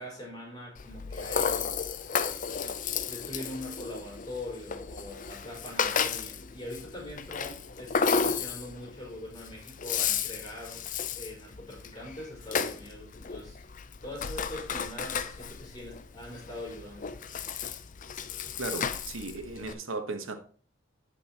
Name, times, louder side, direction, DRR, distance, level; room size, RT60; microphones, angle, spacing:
voice 1, 0.0-1.7 3.1-10.8 11.1-13.6 14.0-17.2, left 1 dB, 20° left, -2 dB, 4.6 m, -42 dB
Rattle (instrument), 0.8-19.7, left 6 dB, 40° left, 0.5 m, -33 dB
voice 2, 18.6-20.3, right 3 dB, 90° right, 6 dB, 1.3 m, -36 dB
15.0 x 5.4 x 2.9 m, 0.43 s
head